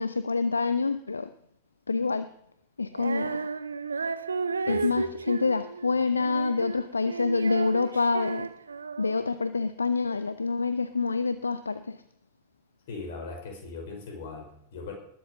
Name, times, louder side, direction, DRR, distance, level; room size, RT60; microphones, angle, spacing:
voice 1, 0.0-1.3 1.9-2.3 2.8-3.4 4.7-8.5 9.0-12.0, left 4 dB, 75° left, 13 dB, 0.6 m, -27 dB
Female singing, 2.9-9.4, right 5 dB, 75° right, 0.7 m, -33 dB
voice 2, 4.7-5.0 12.9-14.9, left 3 dB, 55° left, 2 dB, 5.6 m, -39 dB
20.0 x 7.8 x 6.7 m, 0.72 s
figure-of-eight pair, 90°, 0 cm